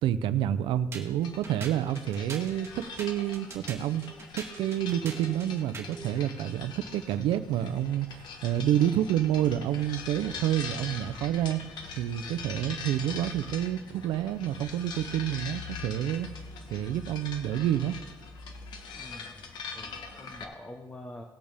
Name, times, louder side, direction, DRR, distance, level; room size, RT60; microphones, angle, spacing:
voice 1, 0.0-4.1 4.3-11.6 12.0-16.3 16.7-18.0, right 11 dB, 90° right, 13 dB, 0.6 m, -28 dB
sound 1, 0.9-6.1, right 4 dB, 35° right, 1.9 m, -43 dB
sound 2, 1.2-20.4, left 4 dB, 65° left, 1.4 m, -42 dB
voice 2, 18.9-21.2, left 1 dB, 20° left, 2 dB, 1.1 m, -46 dB
18.5 x 8.8 x 3.5 m, 1.2 s
cardioid pair, 145°, 8 cm